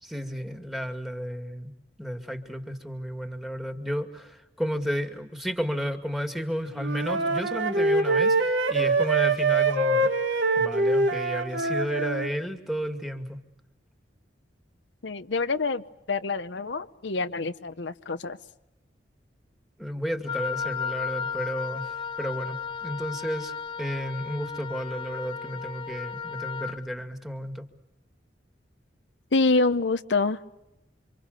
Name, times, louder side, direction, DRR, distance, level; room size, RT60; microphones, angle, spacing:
voice 1, 0.0-1.7 2.0-10.1 10.6-13.4 19.8-21.9 22.2-27.7, equal, ahead, 6 dB, 2.3 m, -32 dB
Wind instrument woodwind instrument, 6.8-12.3, right 3 dB, 85° right, 3.0 m, -24 dB
voice 2, 15.0-18.4 29.3-30.4, left 3 dB, 75° left, 10 dB, 0.9 m, -26 dB
Wind instrument woodwind instrument 2, 20.3-26.8, left 7 dB, 30° left, 1.8 m, -34 dB
28.0 x 26.0 x 6.8 m, 0.93 s
head